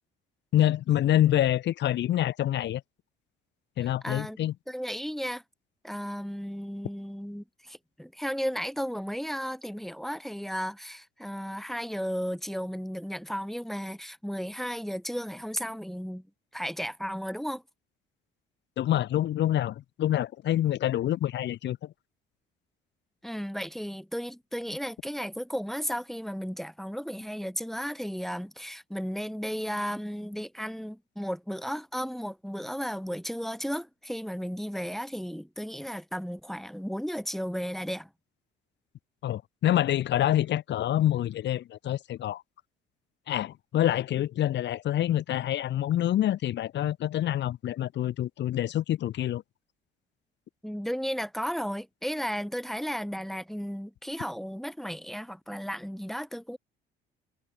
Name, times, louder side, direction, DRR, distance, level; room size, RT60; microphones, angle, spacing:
voice 1, 0.5-2.8 3.8-4.5 18.8-21.9 39.2-42.4 43.3-49.4, left 12 dB, 60° left, 1.5 m, -26 dB
voice 2, 3.8-4.4 4.7-5.4 5.8-16.2 16.5-17.6 23.2-38.1 50.6-56.6, equal, ahead, 2.3 m, -34 dB
supercardioid pair, 70°, 21 cm